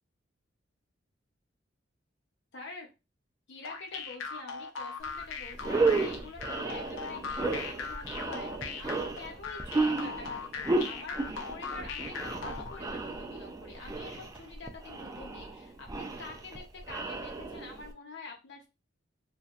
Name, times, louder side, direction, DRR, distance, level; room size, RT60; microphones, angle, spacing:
voice 1, 2.5-2.9 3.5-18.7, left 3 dB, 65° left, 3 dB, 0.7 m, -47 dB
sound 1, 3.6-12.8, left 5 dB, 90° left, 0.5 m, -39 dB
sound 2, 5.1-5.2 5.5-17.9, right 3 dB, 20° right, 0.3 m, -33 dB
2.7 x 2.1 x 2.4 m, 0.26 s
head